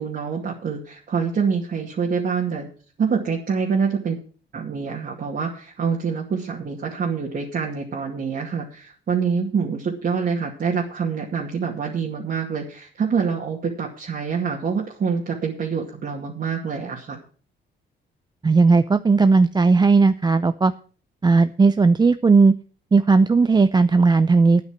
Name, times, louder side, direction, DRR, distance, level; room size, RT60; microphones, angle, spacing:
voice 1, 0.0-2.7 3.0-4.2 4.5-17.2, right 6 dB, 50° right, -2 dB, 2.3 m, -26 dB
voice 2, 18.4-20.7 21.2-22.5 22.9-24.6, right 4 dB, 20° right, 11 dB, 0.5 m, -16 dB
9.6 x 8.4 x 7.4 m, 0.41 s
cardioid pair, 90°, 20 cm